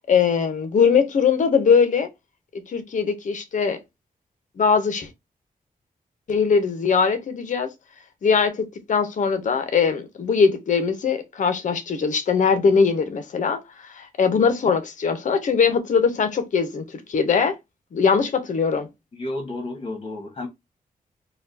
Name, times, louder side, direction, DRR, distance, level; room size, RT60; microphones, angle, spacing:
voice 1, 0.1-2.1 2.7-3.8 4.6-5.1 6.3-7.7 8.2-17.6 17.9-18.9, left 6 dB, 55° left, 0.7 m, -21 dB
voice 2, 19.1-20.5, left 2 dB, 35° left, 1.5 m, -31 dB
4.1 x 2.3 x 2.7 m
wide cardioid pair, 150°, 15 cm